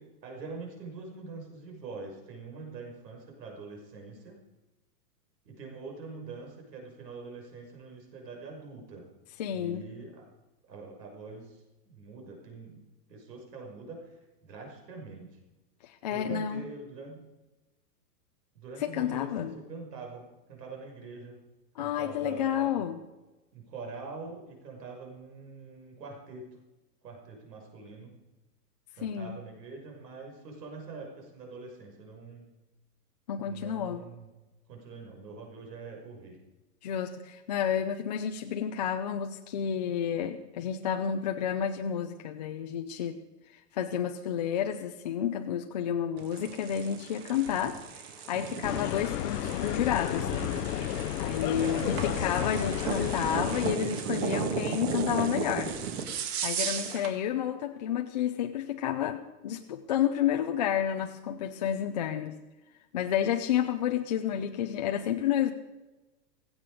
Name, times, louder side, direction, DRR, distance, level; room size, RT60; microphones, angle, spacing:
voice 1, 0.0-4.4 5.4-9.1 9.5-10.2 10.7-12.8 13.1-15.4 16.1-17.2 18.5-21.4 21.8-22.8 23.5-26.5 27.0-28.1 28.9-32.5 33.4-34.3 34.7-36.4 51.3-52.6, right 4 dB, 90° right, 1 dB, 6.1 m, -44 dB
voice 2, 9.4-9.8 15.8-16.6 18.8-19.5 21.8-23.0 29.0-29.4 33.3-34.0 36.8-43.2 43.5-50.3 51.2-55.8 56.4-62.4 62.9-65.5, left 9 dB, 30° left, 4 dB, 0.5 m, -30 dB
sound 1, 46.2-57.2, right 6 dB, 40° right, 1.8 m, -35 dB
sound 2, 48.6-53.8, left 13 dB, 75° left, 0.8 m, -32 dB
16.0 x 16.0 x 5.0 m, 1.1 s
supercardioid pair, 165°, 48 cm